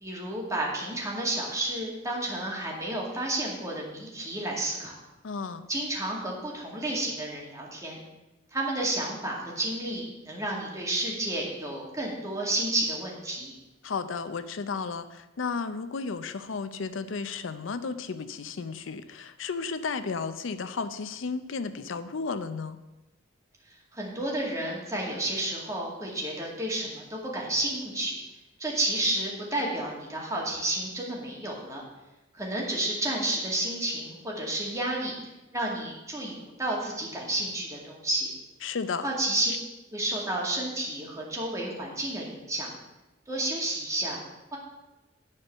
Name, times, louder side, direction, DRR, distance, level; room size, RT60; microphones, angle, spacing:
voice 1, 0.0-5.0 5.7-8.0 8.5-13.5 23.9-28.2 28.6-31.8 32.3-35.1 35.5-38.3 39.0-39.5 39.9-42.7 43.3-44.2 44.5-44.6, right 1 dB, 15° right, -3 dB, 2.2 m, -31 dB
voice 2, 5.2-5.7 13.8-22.8 38.6-39.1, left 5 dB, 75° left, 11 dB, 0.5 m, -33 dB
10.5 x 4.5 x 7.8 m, 1.0 s
head